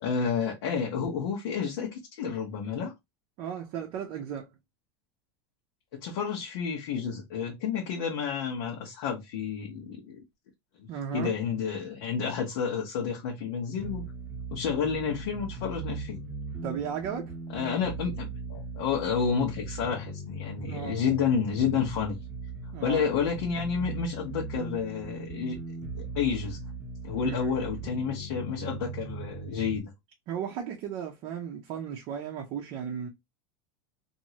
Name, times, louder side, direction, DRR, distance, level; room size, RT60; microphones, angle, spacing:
voice 1, 0.0-2.9 5.9-10.2 10.8-10.9 11.1-14.0 14.5-16.2 17.5-22.2 22.8-25.6 25.9-26.6 27.0-29.9, left 6 dB, 65° left, 1.0 m, -30 dB
voice 2, 3.4-4.5 10.9-11.3 16.6-17.3 20.7-21.0 22.7-23.1 27.2-27.5 30.3-33.1, right 8 dB, 40° right, 0.6 m, -35 dB
sound 1, 13.8-29.8, right 3 dB, 10° right, 0.9 m, -38 dB
3.0 x 2.7 x 2.7 m
supercardioid pair, 160°, 13 cm